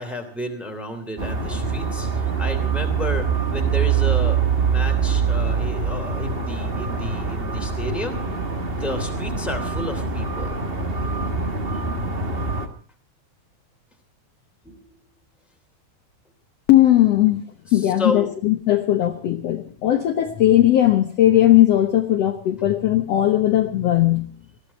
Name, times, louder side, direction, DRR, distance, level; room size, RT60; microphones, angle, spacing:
voice 1, 0.0-8.2 8.8-10.6 11.7-11.8 14.6-15.0 17.7-18.3, left 2 dB, ahead, 3 dB, 2.4 m, -32 dB
sound 1, 1.2-12.7, right 5 dB, 45° right, 0.7 m, -24 dB
voice 2, 16.7-24.3, left 13 dB, 60° left, 6 dB, 1.8 m, -18 dB
20.5 x 15.0 x 4.2 m, 0.42 s
omnidirectional pair, 4.0 m